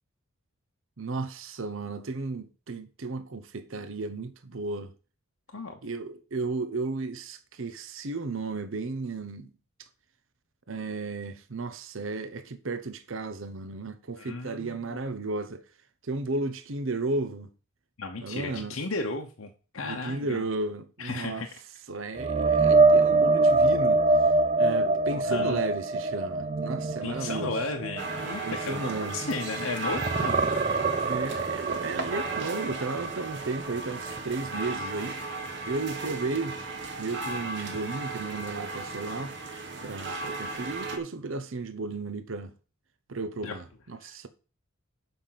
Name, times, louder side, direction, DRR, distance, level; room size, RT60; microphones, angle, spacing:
voice 1, 1.0-4.9 5.8-9.5 10.7-15.6 16.0-17.5 18.2-18.8 19.8-21.5 21.9-24.0 24.6-27.6 28.4-29.4 31.0-35.2 35.7-36.6 37.0-39.3 39.8-42.5 43.1-44.3, right 3 dB, 70° right, 0.8 m, -34 dB
voice 2, 14.2-14.9 18.0-20.4 21.0-21.5 24.8-25.6 27.0-30.4 43.4-43.5 44.0-44.3, left 3 dB, 85° left, 1.0 m, -35 dB
sound 1, 22.2-29.6 29.9-33.8 34.2-34.4 37.7-37.8, right 3 dB, 30° right, 0.5 m, -24 dB
sound 2, 28.0-41.0, right 3 dB, 55° right, 1.4 m, -36 dB
7.0 x 5.4 x 5.8 m
head